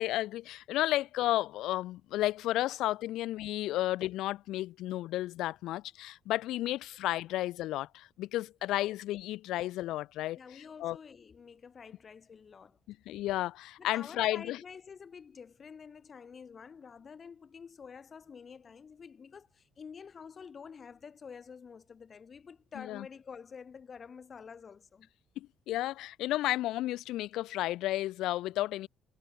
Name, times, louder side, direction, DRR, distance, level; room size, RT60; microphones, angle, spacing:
voice 1, 0.0-10.4 10.8-11.0 12.9-14.6 22.8-23.1 25.4-28.9, left 15 dB, 85° left, 1.1 m, -32 dB
voice 2, 10.3-12.8 13.8-25.1, left 6 dB, 30° left, 4.5 m, -49 dB
cardioid pair, 180°, 0 cm